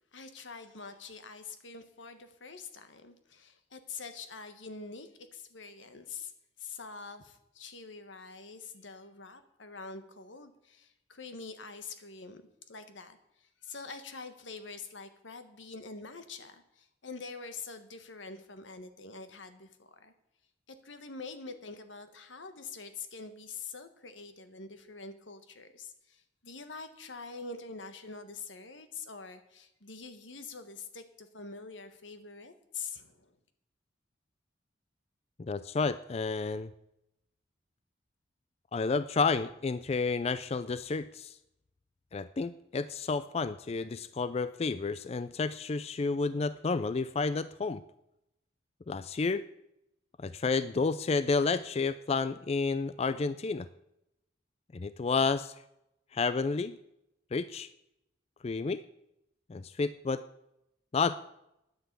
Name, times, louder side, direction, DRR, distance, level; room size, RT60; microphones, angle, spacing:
voice 1, 0.1-6.3 6.6-20.1 20.7-33.4, left 4 dB, 90° left, 9 dB, 1.5 m, -45 dB
voice 2, 35.4-36.7 38.7-41.3 42.1-47.8 48.9-49.4 50.2-53.7 54.7-55.5 56.1-56.8 57.3-57.7 58.4-58.8 59.5-60.2 60.9-61.2, left 4 dB, 35° left, 14 dB, 0.4 m, -30 dB
10.5 x 9.3 x 8.2 m, 0.83 s
head